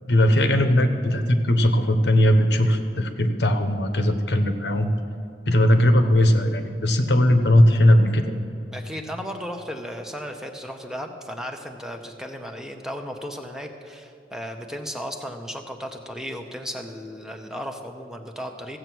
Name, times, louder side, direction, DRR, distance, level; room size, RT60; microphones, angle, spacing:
voice 1, 0.1-4.9 5.5-8.3, left 1 dB, 70° left, 7 dB, 1.0 m, -19 dB
voice 2, 8.7-18.8, equal, 5° right, 4 dB, 0.8 m, -35 dB
15.5 x 8.0 x 6.1 m, 2.6 s
head